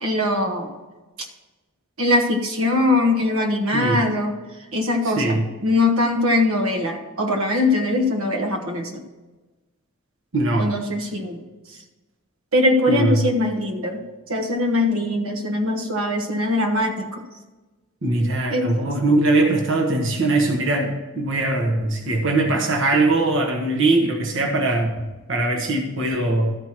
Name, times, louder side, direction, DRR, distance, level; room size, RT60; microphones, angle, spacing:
voice 1, 0.0-0.7 1.2-1.3 2.0-4.4 4.7-9.0 10.6-11.4 12.5-17.2 18.5-18.9, left 2 dB, 80° right, 3 dB, 1.3 m, -22 dB
voice 2, 5.0-5.4 10.3-10.7 12.9-13.3 18.0-26.6, right 2 dB, 60° right, 1 dB, 1.2 m, -21 dB
13.0 x 4.6 x 5.9 m, 1.2 s
head